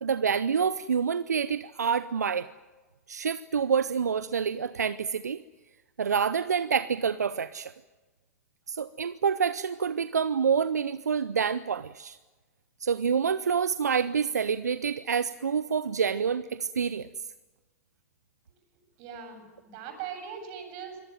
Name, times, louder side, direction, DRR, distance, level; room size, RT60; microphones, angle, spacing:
voice 1, 0.0-2.5 3.1-5.4 6.0-7.7 8.7-12.2 12.8-17.1, right 6 dB, 80° right, 15 dB, 0.7 m, -27 dB
voice 2, 19.0-21.0, right 7 dB, 45° right, 5 dB, 7.8 m, -40 dB
24.5 x 19.0 x 9.2 m, 1.2 s
figure-of-eight pair, 100°, 9 cm